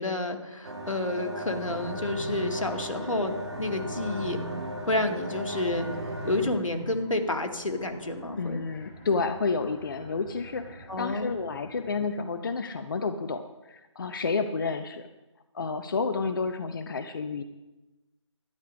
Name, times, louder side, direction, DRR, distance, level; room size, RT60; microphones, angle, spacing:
voice 1, 0.0-4.4 4.9-5.9 6.2-8.6 10.9-11.4, left 2 dB, 85° left, 4 dB, 1.9 m, -30 dB
sound 1, 0.6-6.5, right 1 dB, 55° right, 2.8 m, -36 dB
sound 2, 1.6-12.3, equal, 20° left, 2.4 m, -47 dB
voice 2, 8.4-13.4 13.7-15.1 15.5-17.4, left 4 dB, 40° left, 9 dB, 0.7 m, -30 dB
11.5 x 10.0 x 5.3 m, 1.1 s
figure-of-eight pair, 155°, 16 cm